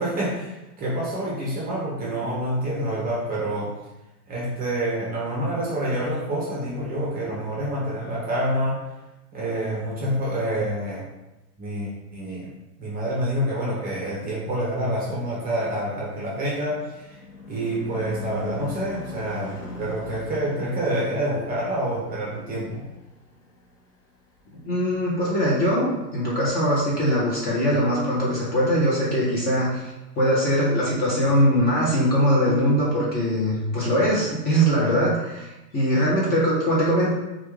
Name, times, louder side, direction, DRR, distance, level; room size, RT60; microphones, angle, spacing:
voice 1, 0.0-3.7 4.3-8.8 9.3-11.1 11.6-12.5 12.8-17.2 17.5-22.8, right 1 dB, 20° right, -5 dB, 0.7 m, -27 dB
Car passing by / Truck / Engine, 16.6-24.7, left 5 dB, 40° left, 1.1 m, -42 dB
voice 2, 24.6-37.1, equal, 20° left, -6 dB, 0.7 m, -22 dB
3.3 x 2.4 x 3.1 m, 1.0 s
hypercardioid pair, 105°, 49 cm